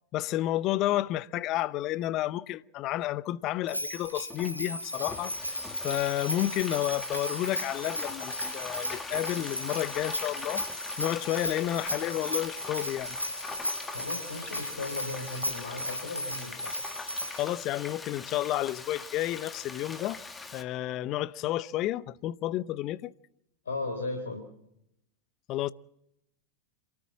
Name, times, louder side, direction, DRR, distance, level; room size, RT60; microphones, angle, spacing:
voice 1, 0.1-5.3 5.8-10.6 11.0-13.2 17.4-20.2 20.5-23.1 25.5-25.7, left 15 dB, 35° left, 0.7 m, -31 dB
Bell, 3.7-17.5, equal, 90° right, 2.5 m, -36 dB
Frying (food), 4.0-20.6, left 3 dB, 15° left, 2.0 m, -42 dB
voice 2, 13.9-16.7 23.7-24.5, left 3 dB, 70° left, 3.6 m, -36 dB
27.5 x 13.5 x 7.2 m
figure-of-eight pair, 90°, 0 cm